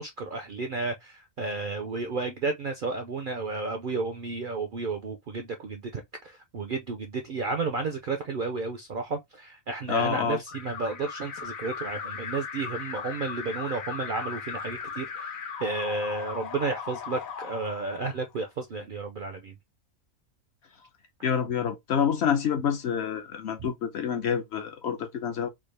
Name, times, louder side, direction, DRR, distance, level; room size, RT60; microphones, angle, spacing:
voice 1, 0.0-19.5, right 3 dB, 65° right, 0.5 m, -32 dB
voice 2, 9.9-10.4 21.2-25.5, left 7 dB, 65° left, 0.7 m, -27 dB
Alarm, 10.5-18.4, left 6 dB, 85° left, 1.2 m, -38 dB
3.5 x 2.3 x 3.2 m
omnidirectional pair, 1.4 m